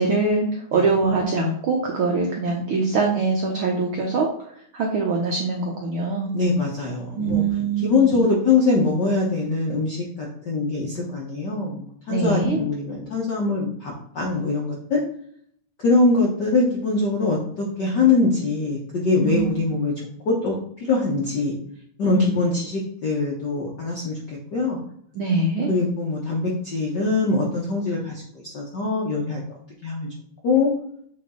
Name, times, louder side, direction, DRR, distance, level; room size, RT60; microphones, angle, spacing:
voice 1, 0.0-4.3 4.7-6.3 7.2-8.2 12.1-12.6 19.2-19.7 22.0-22.4 25.1-25.7, right 4 dB, 75° right, 0 dB, 1.2 m, -23 dB
voice 2, 6.3-7.4 7.8-15.0 15.8-19.9 20.2-20.5 20.9-21.6 22.0-24.8 25.7-29.4 29.8-30.1 30.4-30.7, left 3 dB, 65° left, -3 dB, 1.0 m, -23 dB
8.3 x 3.4 x 3.8 m, 0.65 s
omnidirectional pair, 3.5 m